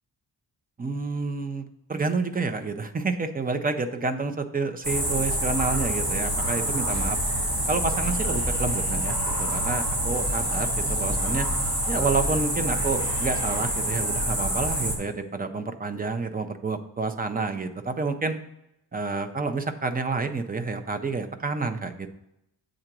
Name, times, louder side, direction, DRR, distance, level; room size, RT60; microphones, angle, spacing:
voice 1, 0.8-7.2 7.7-11.5 11.9-18.4 18.9-22.1, right 4 dB, 20° right, 8 dB, 0.5 m, -29 dB
sound 1, 4.8-15.0, right 1 dB, 40° right, 2.2 m, -26 dB
7.8 x 3.9 x 5.9 m, 0.84 s
wide cardioid pair, 165°, 42 cm